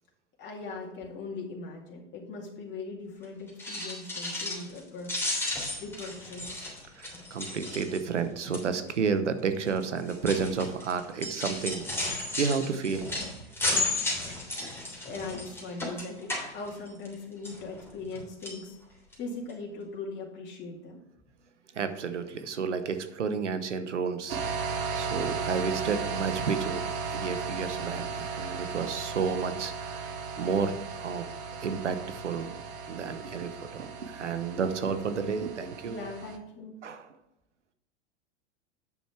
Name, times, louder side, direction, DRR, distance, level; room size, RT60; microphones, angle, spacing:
voice 1, 0.4-5.1 5.8-6.7 15.0-18.8 19.2-21.0 35.9-36.8, left 3 dB, 30° left, -2 dB, 2.4 m, -40 dB
sound 1, 3.5-4.8 5.0-8.2 8.5-8.9 9.6-17.1 17.4-18.2 18.4-18.6 19.1-19.2 19.5-19.6, left 2 dB, 5° left, 3.2 m, -34 dB
voice 2, 7.0-13.1 21.7-26.8 27.1-30.1 30.4-31.2 31.6-32.6 32.9-36.0 36.8-37.1, right 5 dB, 90° right, 10 dB, 1.0 m, -31 dB
sound 2, 24.3-36.4, right 5 dB, 55° right, 1.5 m, -36 dB
9.0 x 6.4 x 4.6 m, 0.93 s
hypercardioid pair, 105°, 35 cm